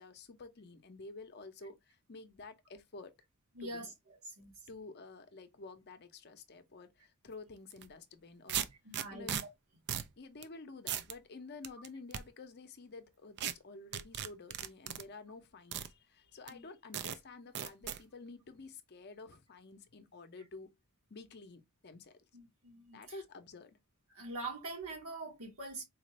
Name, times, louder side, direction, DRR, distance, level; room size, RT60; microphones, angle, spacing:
voice 1, 0.0-3.1 3.6-3.9 4.7-8.7 9.1-9.4 10.2-20.7 21.1-22.2 22.9-23.8, left 3 dB, 45° left, 0.6 m, -51 dB
voice 2, 3.6-3.9 4.3-4.5 8.8-9.5 16.5-16.6 22.3-23.0 24.1-25.8, right 2 dB, 75° right, 1.8 m, -44 dB
sound 1, 7.7-7.9 8.5-9.4 9.9-10.1 10.4-10.5 10.9-11.1 11.6-12.2 13.4-13.5 13.9-15.0 15.7-15.9 16.5-16.6 16.9-17.2 17.6-18.0, right 10 dB, 50° right, 0.4 m, -37 dB
4.1 x 2.5 x 3.0 m
head